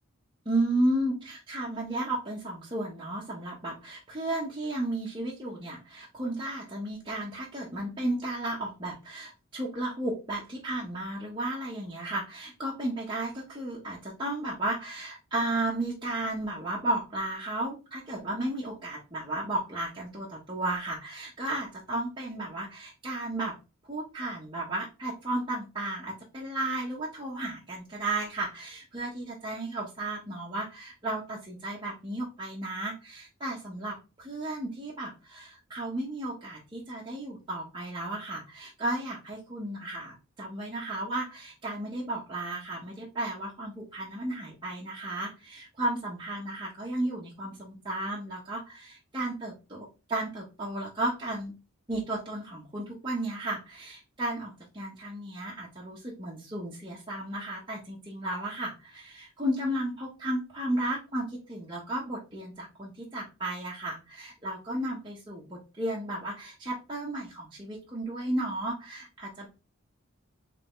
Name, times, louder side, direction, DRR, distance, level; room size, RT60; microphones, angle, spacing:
voice 1, 0.4-23.5 23.9-51.5 51.9-69.5, right 1 dB, 20° right, -5 dB, 0.8 m, -34 dB
3.7 x 3.3 x 3.6 m, 0.30 s
head